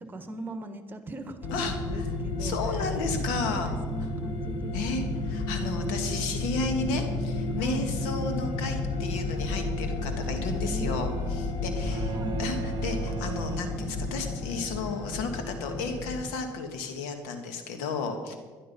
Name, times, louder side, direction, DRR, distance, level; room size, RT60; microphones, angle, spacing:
voice 1, 0.1-2.6 3.4-5.4 7.6-7.9 10.6-11.4 11.9-12.4, right 2 dB, 25° right, 9 dB, 1.5 m, -40 dB
sound 1, 1.4-16.2, left 2 dB, 70° left, 2.5 m, -32 dB
voice 2, 1.5-2.0 2.4-3.7 4.7-18.3, left 4 dB, 90° left, 6 dB, 1.7 m, -33 dB
sound 2, 11.8-14.4, right 11 dB, 55° right, 0.5 m, -38 dB
12.0 x 11.0 x 5.4 m, 1.5 s
supercardioid pair, 85°, 8 cm